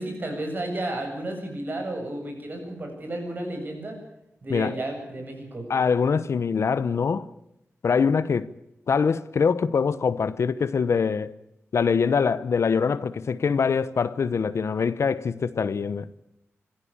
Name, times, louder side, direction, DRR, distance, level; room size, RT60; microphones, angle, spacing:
voice 1, 0.0-4.0 4.4-5.7, right 1 dB, 40° right, 7.9 m, -32 dB
voice 2, 5.7-7.3 7.8-8.5 8.9-11.3 11.7-16.1, left 5 dB, 65° left, 0.9 m, -23 dB
25.5 x 16.0 x 8.7 m
wide cardioid pair, 155°, 5 cm